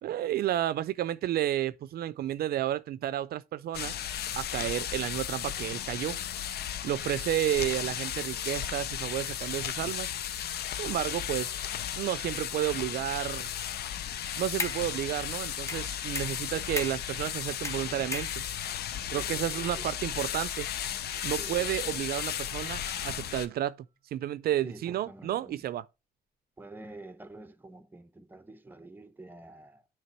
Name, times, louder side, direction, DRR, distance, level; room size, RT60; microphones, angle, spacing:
voice 1, 0.0-3.9 4.4-6.2 6.8-10.2 10.8-11.6 12.0-13.5 14.4-18.4 19.1-20.7 21.2-23.8 24.1-25.8, right 12 dB, 75° right, 0.4 m, -31 dB
sound 1, 3.7-23.5, left 10 dB, 85° left, 0.6 m, -35 dB
sound 2, 14.2-14.9 15.7-17.1 17.6-18.7, left 2 dB, 20° left, 0.8 m, -37 dB
voice 2, 19.1-19.9 21.4-21.7 24.6-25.6 26.6-29.9, right 2 dB, 10° right, 0.7 m, -48 dB
sound 3, 22.9-25.6, right 3 dB, 60° left, 2.3 m, -60 dB
9.6 x 3.4 x 4.4 m
cardioid pair, 125°, 16 cm